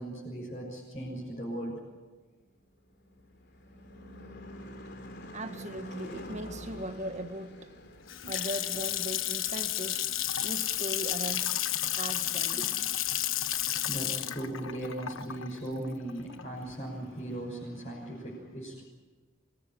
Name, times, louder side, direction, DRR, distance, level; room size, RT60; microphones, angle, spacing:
voice 1, 0.0-1.8 8.3-8.5 13.9-18.8, right 1 dB, 30° left, -5 dB, 6.0 m, -38 dB
Car passing by / Truck / Engine, 2.6-11.3, equal, 50° left, 3.4 m, -47 dB
voice 2, 5.3-7.7 8.3-11.5 11.9-12.9, right 1 dB, 35° right, 8 dB, 1.6 m, -39 dB
Water tap faucet / Sink (filling or washing) / Splash splatter, 7.8-16.7, left 12 dB, 70° left, 1.2 m, -32 dB
26.0 x 19.0 x 10.0 m, 1.4 s
head